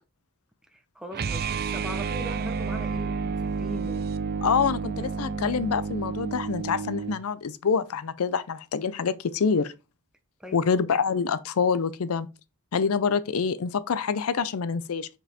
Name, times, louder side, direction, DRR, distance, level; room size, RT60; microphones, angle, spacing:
voice 1, 0.7-4.1 4.9-5.1 10.4-10.9, equal, 5° right, 0.9 m, -41 dB
sound 1, 1.1-7.2, right 5 dB, 45° right, 0.5 m, -30 dB
voice 2, 4.4-9.7 10.5-12.3 12.7-15.1, left 6 dB, 75° left, 0.5 m, -26 dB
5.4 x 5.1 x 4.2 m
head